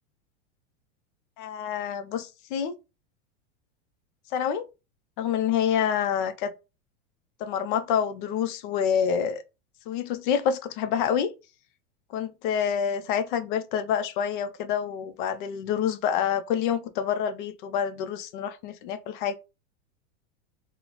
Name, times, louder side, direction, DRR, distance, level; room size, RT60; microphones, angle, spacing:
voice 1, 1.4-2.8 4.3-4.6 5.2-6.5 7.4-9.4 9.9-11.3 12.1-19.3, left 8 dB, 45° left, 0.4 m, -27 dB
3.8 x 2.0 x 2.9 m
supercardioid pair, 150°, 37 cm